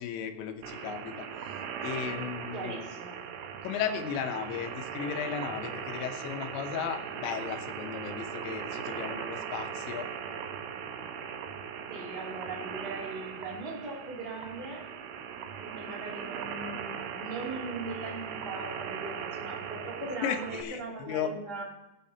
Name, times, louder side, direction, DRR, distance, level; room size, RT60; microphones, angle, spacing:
voice 1, 0.0-2.9 3.6-10.1 20.2-21.3, left 8 dB, 90° left, 5 dB, 3.3 m, -35 dB
sound 1, 0.6-20.6, right 7 dB, 75° right, 2.5 m, -39 dB
voice 2, 2.5-3.2 11.9-14.8 15.5-21.6, right 2 dB, 15° right, -3 dB, 2.1 m, -39 dB
19.0 x 9.0 x 2.8 m, 0.92 s
omnidirectional pair, 5.0 m